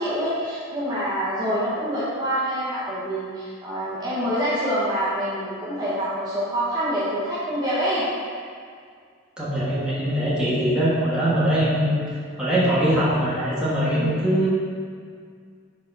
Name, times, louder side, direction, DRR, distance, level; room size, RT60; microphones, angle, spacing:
voice 1, 0.0-8.0 11.4-11.6 13.9-14.1, equal, 20° right, -10 dB, 1.1 m, -26 dB
voice 2, 9.4-12.0 12.4-14.5, equal, 5° right, -10 dB, 1.4 m, -22 dB
4.3 x 4.1 x 5.4 m, 2.1 s
head